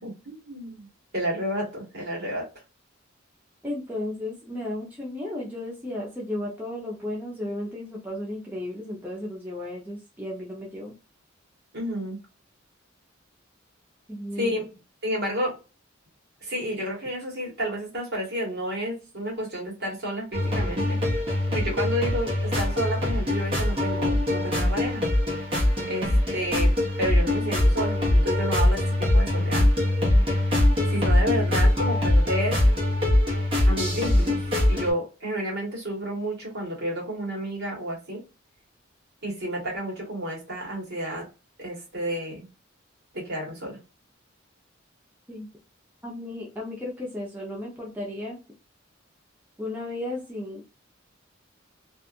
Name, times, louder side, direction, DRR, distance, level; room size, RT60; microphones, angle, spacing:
voice 1, 0.0-0.9 1.1-2.4 11.7-12.2 14.4-14.7 15.0-15.5 16.4-21.2 21.5-25.0 25.9-26.7 27.0-29.7 30.9-32.6 33.6-34.4 34.6-38.2 39.2-41.3 41.6-42.5 43.1-43.8, equal, 55° right, -2 dB, 1.4 m, -30 dB
voice 2, 3.6-10.9 14.1-14.5 45.3-45.5 46.0-48.4 49.6-50.6, left 1 dB, 10° right, -4 dB, 0.7 m, -34 dB
sound 1, 20.3-34.9, left 1 dB, 30° right, 1.2 m, -22 dB
2.6 x 2.4 x 2.4 m, 0.31 s
head